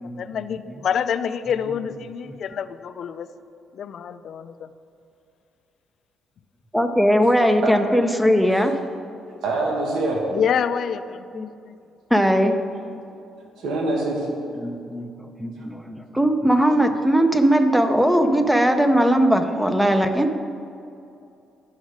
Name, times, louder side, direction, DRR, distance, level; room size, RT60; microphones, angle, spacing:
voice 1, 0.0-3.3 3.7-4.7 10.3-11.8, left 7 dB, 55° left, 12 dB, 0.4 m, -27 dB
voice 2, 6.7-8.8 11.4-11.5 12.1-12.5 14.6-20.3, equal, 5° right, 7 dB, 0.5 m, -19 dB
voice 3, 9.2-10.2 13.6-14.3, right 2 dB, 85° right, -1 dB, 1.5 m, -24 dB
10.5 x 6.3 x 5.0 m, 2.6 s
cardioid pair, 140°, 0 cm